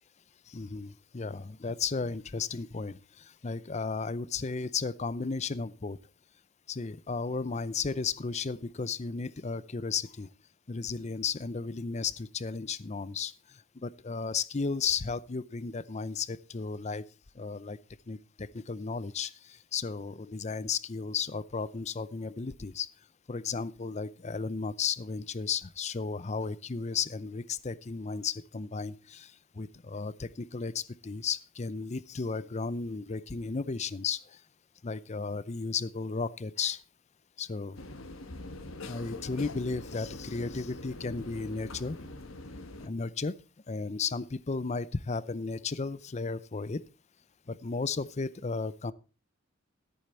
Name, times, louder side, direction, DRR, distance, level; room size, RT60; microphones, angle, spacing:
voice 1, 0.5-6.0 6.7-10.3 10.7-17.0 17.3-17.8 18.1-22.9 23.3-34.4 34.8-36.8 37.4-37.8 38.8-42.0 42.8-43.3 43.7-46.8 47.5-48.9, left 4 dB, 35° left, 18 dB, 0.5 m, -34 dB
sound 1, 37.7-42.9, left 2 dB, 85° left, 1.3 m, -43 dB
14.0 x 8.6 x 4.3 m, 0.33 s
head